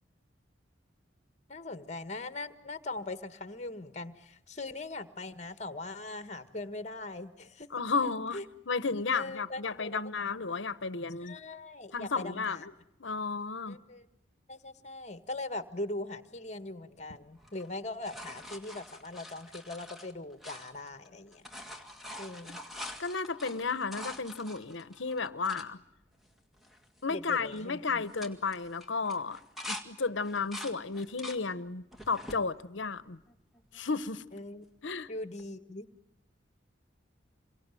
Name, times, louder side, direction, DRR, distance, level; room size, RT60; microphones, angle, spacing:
voice 1, 1.5-7.7 8.3-8.4 9.1-10.1 11.2-12.7 13.7-14.1 14.5-21.4 22.2-22.6 27.1-28.0 34.3-34.6 35.1-35.9, left 2 dB, 35° left, 1.6 m, -40 dB
voice 2, 7.7-8.4 8.7-11.4 11.9-12.7 13.0-13.8 23.0-25.8 27.0-29.4 29.7-33.2 33.7-34.2 34.8-35.1, left 4 dB, 70° left, 1.0 m, -33 dB
sound 1, 17.4-21.1 21.3-25.7 26.3-26.4 26.6-27.0 27.3-27.6 28.0-29.9 30.2-31.4 31.9-32.4 33.0-33.8 35.4-35.5, left 1 dB, ahead, 1.9 m, -45 dB
28.0 x 23.5 x 9.1 m
head